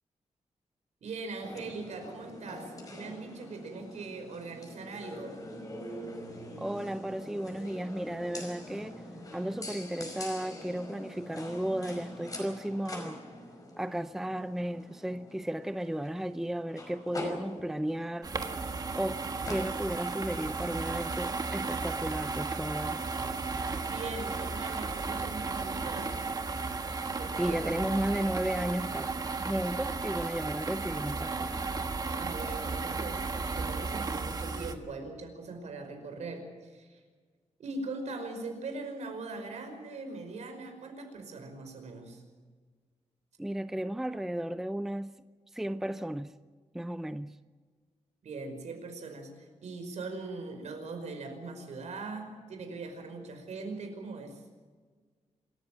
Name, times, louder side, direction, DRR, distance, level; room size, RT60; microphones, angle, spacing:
voice 1, 1.0-5.4 23.2-23.4 23.8-26.2 27.2-27.8 32.1-37.0 37.6-42.2 48.2-54.4, right 3 dB, 75° right, 5.2 m, -41 dB
sound 1, 1.4-20.3, left 1 dB, 30° left, 5.2 m, -44 dB
voice 2, 6.6-8.9 9.3-13.2 13.8-18.7 18.9-23.0 27.4-29.1 29.4-31.6 43.4-45.1 45.5-46.3 46.7-47.4, right 1 dB, 5° right, 0.5 m, -34 dB
sound 2, 18.2-34.8, right 4 dB, 30° right, 1.6 m, -34 dB
27.5 x 14.0 x 7.5 m
wide cardioid pair, 155°, 12 cm